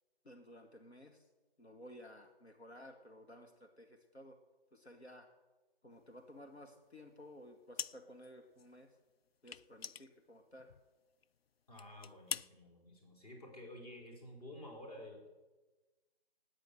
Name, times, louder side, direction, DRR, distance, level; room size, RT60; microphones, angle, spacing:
voice 1, 0.2-1.3 1.6-4.4 4.7-5.3 5.8-8.9 9.4-10.7, left 1 dB, 85° left, 4 dB, 1.9 m, -55 dB
sound 1, 7.8-8.3 8.6-8.7 9.5-10.9 11.2-11.4 11.8-12.5, left 7 dB, 70° left, 0.5 m, -43 dB
voice 2, 11.7-15.3, left 1 dB, 35° left, 0 dB, 4.2 m, -51 dB
17.5 x 8.9 x 6.6 m, 1.2 s
figure-of-eight pair, 150°, 32 cm